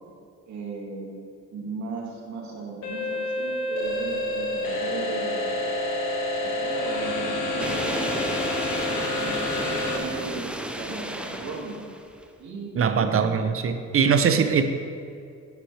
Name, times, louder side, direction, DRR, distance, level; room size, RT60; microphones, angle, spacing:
voice 1, 0.5-1.1 1.5-5.8 6.3-8.3 8.9-11.8 12.4-13.2 14.3-14.4, right 3 dB, 70° right, -2 dB, 2.1 m, -37 dB
sound 1, 2.8-10.0, left 1 dB, 80° left, 1.7 m, -28 dB
sound 2, 7.6-12.3, right 1 dB, 5° right, 0.6 m, -33 dB
voice 2, 12.8-14.6, right 6 dB, 45° right, 8 dB, 0.7 m, -21 dB
13.0 x 5.9 x 3.3 m, 2.4 s
cardioid pair, 90°, 30 cm